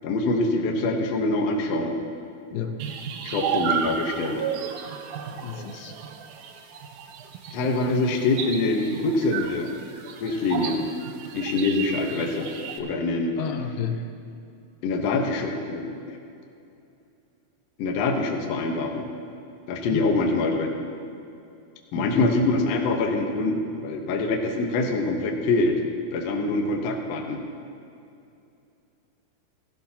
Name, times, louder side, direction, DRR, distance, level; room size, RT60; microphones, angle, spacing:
voice 1, 0.0-2.0 3.2-4.4 7.5-9.7 10.2-10.9 11.3-12.5 12.8-13.4 14.8-16.2 17.8-19.1 19.7-20.8 21.9-25.8 26.1-27.4, left 2 dB, 65° left, 2 dB, 1.6 m, -25 dB
voice 2, 2.5-2.8 5.3-6.0 13.4-14.1 19.9-20.2 21.9-22.3, left 7 dB, 85° left, 5 dB, 2.8 m, -31 dB
sound 1, 2.8-12.8, right 7 dB, 80° right, 1.8 m, -33 dB
16.0 x 16.0 x 2.9 m, 2.6 s
omnidirectional pair, 4.3 m